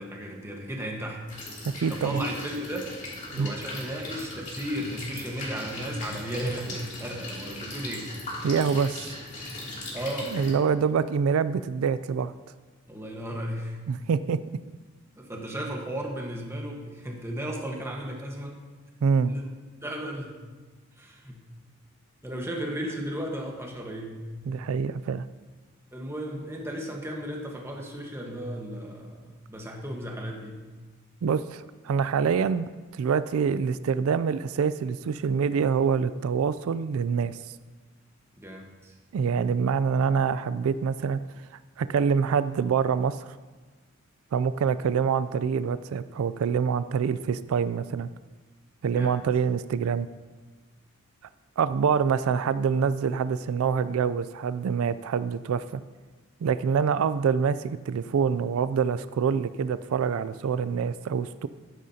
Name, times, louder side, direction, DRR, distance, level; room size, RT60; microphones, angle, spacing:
voice 1, 0.0-1.5 1.9-2.9 3.3-8.1 9.9-10.5 12.9-13.8 15.2-18.6 19.1-19.5 19.8-20.4 21.0-21.5 22.2-24.3 25.9-30.6 38.4-39.0 48.9-49.1, equal, 10° right, 0 dB, 1.2 m, -35 dB
sound 1, 1.3-10.5, left 2 dB, 35° left, 2.7 m, -39 dB
voice 2, 1.6-2.2 3.3-3.5 8.4-9.1 10.3-12.3 13.9-14.4 19.0-19.3 24.5-25.3 31.2-37.4 39.1-41.2 41.8-43.2 44.3-48.1 48.8-50.1 51.6-55.8 56.4-61.5, right 6 dB, 90° right, 14 dB, 0.3 m, -25 dB
12.5 x 10.0 x 2.8 m, 1.3 s
head